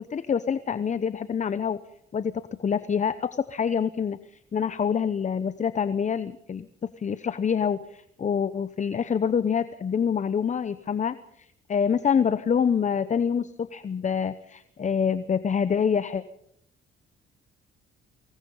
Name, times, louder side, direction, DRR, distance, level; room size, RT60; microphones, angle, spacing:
voice 1, 0.0-1.8 2.1-16.2, left 7 dB, 35° left, 14 dB, 0.9 m, -26 dB
24.5 x 19.0 x 5.6 m, 0.72 s
cardioid pair, 90°, 20 cm